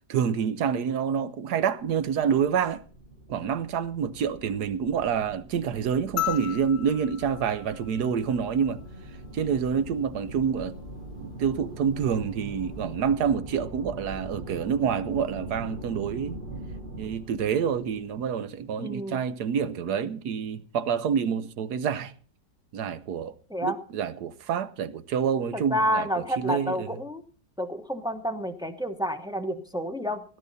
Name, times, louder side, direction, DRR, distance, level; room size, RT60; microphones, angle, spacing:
voice 1, 0.1-2.8 3.3-8.8 9.3-10.7 11.2-16.4 17.0-22.1 22.7-23.3 23.6-27.0, right 7 dB, 65° right, 1.3 m, -27 dB
sound 1, 1.8-18.8, right 2 dB, 30° right, 1.6 m, -42 dB
sound 2, 6.2-8.7 10.3-10.4, left 13 dB, 45° left, 0.9 m, -35 dB
voice 2, 18.8-19.2 23.5-23.8 25.7-27.2 27.6-30.2, equal, 5° right, 0.6 m, -29 dB
17.0 x 11.0 x 4.1 m
omnidirectional pair, 1.9 m